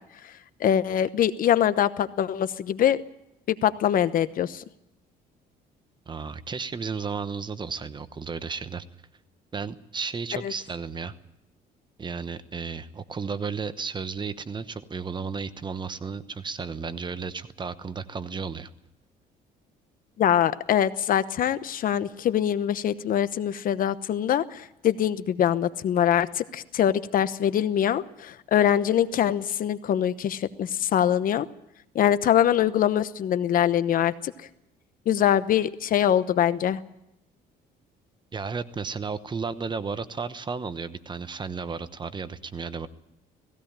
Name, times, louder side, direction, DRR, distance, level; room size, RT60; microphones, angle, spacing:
voice 1, 0.6-3.0 3.5-4.6 10.3-10.5 20.2-31.5 31.9-34.3 35.1-36.8, left 10 dB, 55° left, 14 dB, 1.0 m, -23 dB
voice 2, 6.1-8.8 9.5-11.1 12.0-18.7 38.3-42.9, right 5 dB, 25° right, 13 dB, 1.0 m, -33 dB
18.0 x 16.5 x 8.8 m, 0.86 s
cardioid pair, 110°, 17 cm